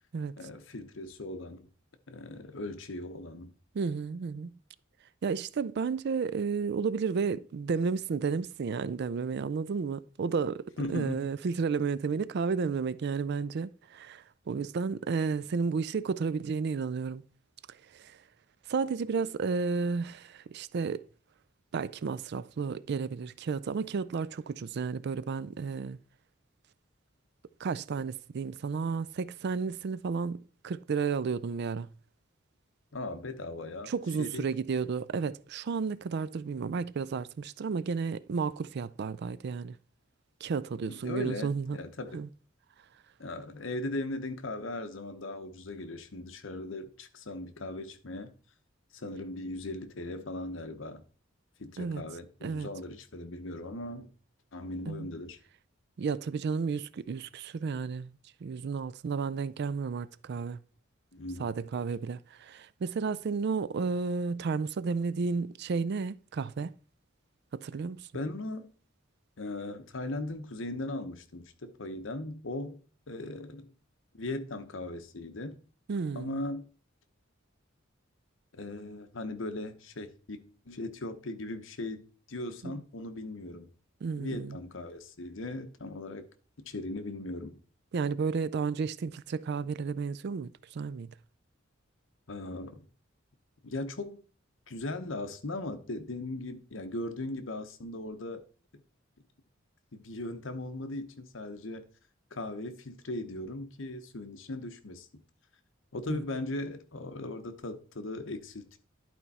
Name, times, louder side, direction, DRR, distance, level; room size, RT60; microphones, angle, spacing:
voice 1, 0.4-1.7 2.1-3.5 10.8-11.2 32.9-33.9 34.2-34.5 40.9-42.2 43.2-48.3 48.9-51.0 51.6-54.1 54.5-55.4 61.1-61.5 68.1-68.7 69.4-72.8 73.1-73.7 74.1-75.6 76.1-76.7 78.5-83.7 84.2-86.3 86.7-87.6 92.3-92.9 93.6-94.2 94.7-98.4 98.7-98.8 99.9-101.9 102.3-105.1 105.9-108.8, left 2 dB, 70° left, 0.9 m, -38 dB
voice 2, 3.7-4.5 5.2-17.2 17.9-18.2 18.7-21.0 21.7-26.0 27.6-31.9 33.9-39.8 40.4-41.8 42.1-42.3 51.8-52.0 52.4-52.7 54.9-55.1 56.0-58.1 58.4-60.6 61.4-66.7 67.5-68.1 75.9-76.4 82.6-82.7 84.0-84.6 87.9-91.1 106.1-106.2, right 5 dB, 55° right, 0.4 m, -32 dB
11.0 x 4.4 x 4.1 m
head